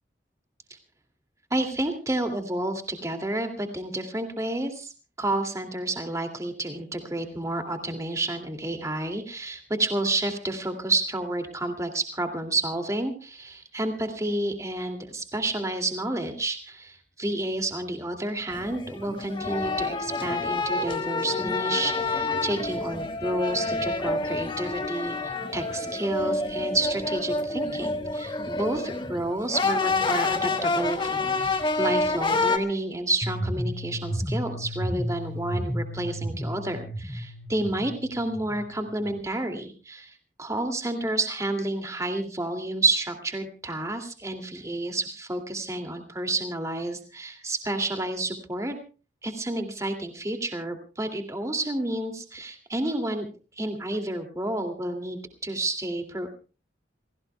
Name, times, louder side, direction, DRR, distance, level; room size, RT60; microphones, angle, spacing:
voice 1, 1.5-4.9 5.2-48.7 49.2-53.3 53.6-56.3, right 2 dB, 20° right, 6 dB, 2.4 m, -30 dB
sound 1, 18.5-32.6, left 3 dB, 30° left, 1.5 m, -28 dB
sound 2, 33.2-39.2, equal, 10° left, 4.7 m, -33 dB
28.0 x 17.5 x 2.3 m, 0.35 s
head